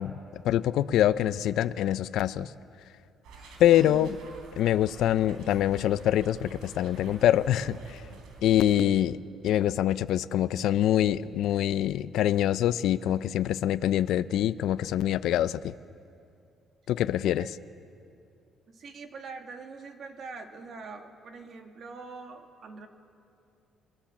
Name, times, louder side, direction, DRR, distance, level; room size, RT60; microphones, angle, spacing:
voice 1, 0.0-2.5 3.6-4.2 4.6-8.0 8.4-9.2 9.4-15.7 16.9-17.4, left 12 dB, 75° left, 14 dB, 0.5 m, -25 dB
sound 1, 3.2-8.8, right 3 dB, 80° right, 4.1 m, -48 dB
voice 2, 18.7-22.9, right 4 dB, 45° right, 5 dB, 2.2 m, -43 dB
29.0 x 22.0 x 7.3 m, 2.5 s
cardioid pair, 145°, 0 cm